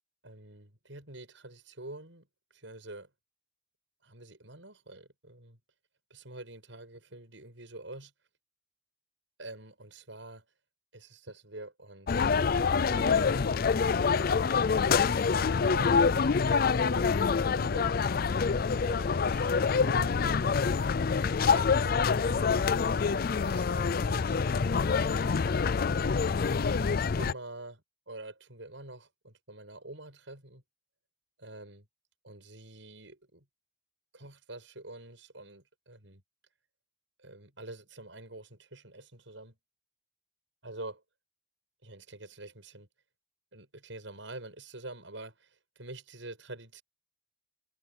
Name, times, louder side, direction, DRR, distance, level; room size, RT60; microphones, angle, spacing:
voice 1, 0.2-2.3 2.5-3.1 4.0-5.6 6.1-8.1 9.4-10.4 10.9-12.4 12.7-14.0 14.8-18.0 18.8-20.7 21.4-25.8 26.7-30.6 31.4-31.9 32.2-33.4 34.1-36.2 37.2-39.6 40.6-41.0 41.8-42.9 43.5-46.8, right 2 dB, 75° right, 7.1 m, -46 dB
sound 1, 12.1-27.3, left 5 dB, 50° left, 0.4 m, -26 dB
head